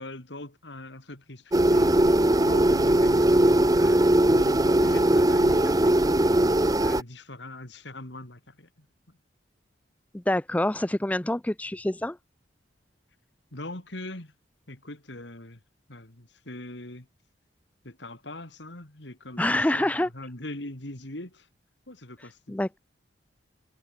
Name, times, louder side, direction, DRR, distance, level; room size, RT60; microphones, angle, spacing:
voice 1, 0.0-8.9 13.5-14.3 14.7-15.6 15.9-17.1 17.8-21.5 21.9-22.6, left 1 dB, 70° left, 3.3 m, -41 dB
sound 1, 1.5-7.0, right 1 dB, 20° right, 0.8 m, -20 dB
voice 2, 10.1-12.2 19.4-20.1 22.5-22.8, left 1 dB, 10° left, 0.4 m, -26 dB
head